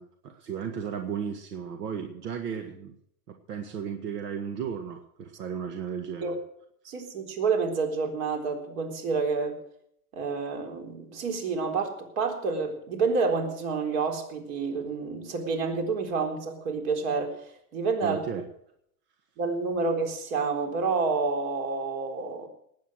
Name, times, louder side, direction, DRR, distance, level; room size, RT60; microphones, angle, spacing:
voice 1, 0.0-3.0 3.3-6.4 18.0-18.4, right 7 dB, 85° right, 5 dB, 1.8 m, -35 dB
voice 2, 6.8-9.6 10.1-17.4 17.7-18.2 19.4-22.5, right 4 dB, 60° right, 3 dB, 4.0 m, -29 dB
19.0 x 8.8 x 6.4 m, 0.71 s
supercardioid pair, 155°, 46 cm